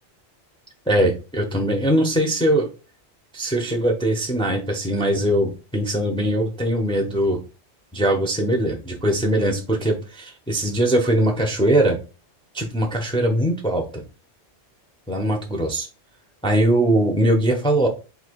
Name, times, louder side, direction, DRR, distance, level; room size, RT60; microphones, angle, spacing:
voice 1, 0.9-2.7 3.3-7.4 7.9-12.0 12.5-14.0 15.1-15.9 16.4-17.9, right 1 dB, 5° left, 2 dB, 0.6 m, -21 dB
3.9 x 2.8 x 4.5 m, 0.32 s
omnidirectional pair, 1.1 m